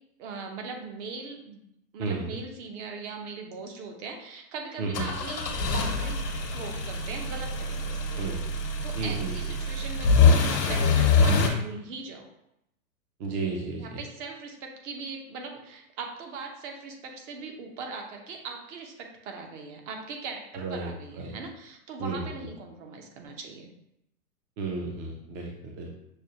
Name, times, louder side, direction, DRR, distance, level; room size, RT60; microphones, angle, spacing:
voice 1, 0.2-1.6 1.9-6.2 6.5-8.1 8.8-12.3 13.8-23.7, right 4 dB, 50° right, 3 dB, 1.0 m, -40 dB
voice 2, 2.0-2.3 4.8-5.1 8.1-8.4 9.0-9.4 13.2-14.0 20.5-21.3 22.0-22.3 24.6-26.0, right 3 dB, 25° right, 0 dB, 0.4 m, -33 dB
sound 1, 4.9-11.5, left 4 dB, 90° left, 1.0 m, -24 dB
6.2 x 2.3 x 2.9 m, 0.82 s
hypercardioid pair, 115°, 47 cm